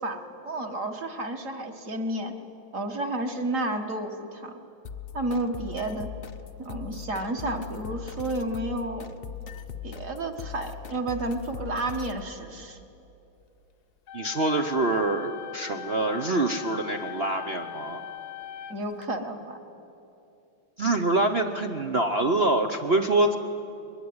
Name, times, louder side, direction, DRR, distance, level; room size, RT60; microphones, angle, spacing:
voice 1, 0.0-2.3 2.7-4.5 5.1-6.1 6.6-9.1 9.8-12.8 18.7-19.6, right 2 dB, 40° right, 5 dB, 1.8 m, -31 dB
sound 1, 4.8-12.2, left 7 dB, 75° left, 0.5 m, -40 dB
sound 2, 14.1-19.0, left 10 dB, 55° left, 1.2 m, -40 dB
voice 2, 14.1-18.0 20.8-23.4, right 2 dB, 60° right, 6 dB, 0.6 m, -25 dB
22.5 x 21.5 x 9.6 m, 2.8 s
omnidirectional pair, 2.3 m